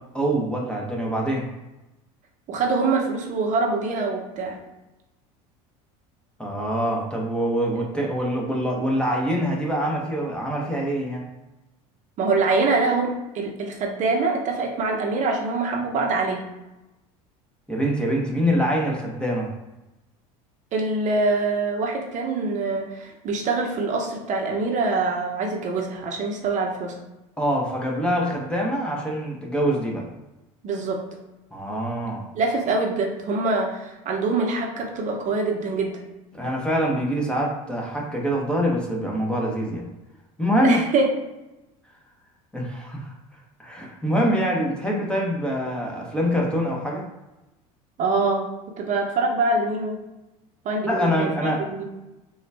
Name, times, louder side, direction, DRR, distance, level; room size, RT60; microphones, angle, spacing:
voice 1, 0.1-1.5 6.4-11.3 17.7-19.5 27.4-30.1 31.5-32.2 36.3-39.9 40.4-40.8 42.5-43.1 43.6-47.1 50.8-51.6, equal, 5° left, -2 dB, 0.8 m, -24 dB
voice 2, 2.5-4.6 12.2-16.4 20.7-26.9 30.6-31.0 32.3-36.0 40.6-41.1 48.0-48.4 48.8-49.9 50.6-51.8, right 3 dB, 45° right, 1 dB, 0.7 m, -24 dB
3.8 x 2.3 x 3.4 m, 1.0 s
supercardioid pair, 100°, 18 cm